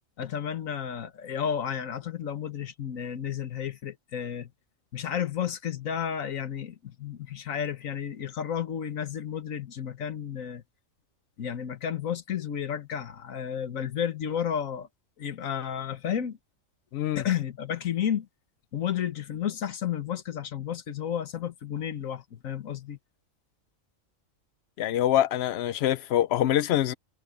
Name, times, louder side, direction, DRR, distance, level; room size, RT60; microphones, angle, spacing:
voice 1, 0.2-4.5 4.9-10.6 11.4-14.9 15.2-16.4 17.1-18.3 18.7-23.0, left 9 dB, 90° left, 1.6 m, -32 dB
voice 2, 16.9-17.2 24.8-26.9, left 12 dB, 65° left, 0.7 m, -25 dB
omnidirectional pair, 1.3 m